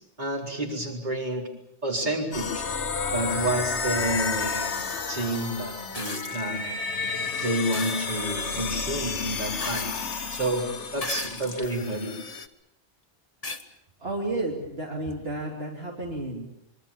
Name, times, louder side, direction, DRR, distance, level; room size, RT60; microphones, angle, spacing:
voice 1, 0.2-1.5 1.8-2.7 3.1-4.8 5.1-6.7 7.4-9.9 10.3-10.7 10.9-12.1, right 1 dB, 40° right, 1 dB, 4.4 m, -29 dB
sound 1, 2.3-12.5, left 5 dB, 80° left, 1.6 m, -31 dB
sound 2, 5.9-6.4 7.7-8.0 9.6-10.2 11.0-11.7 12.4-12.5 13.4-13.6 15.1-15.2, left 3 dB, 35° left, 1.6 m, -35 dB
voice 2, 14.0-16.5, right 2 dB, 60° right, -1 dB, 3.2 m, -32 dB
25.0 x 23.5 x 7.2 m, 0.80 s
omnidirectional pair, 1.1 m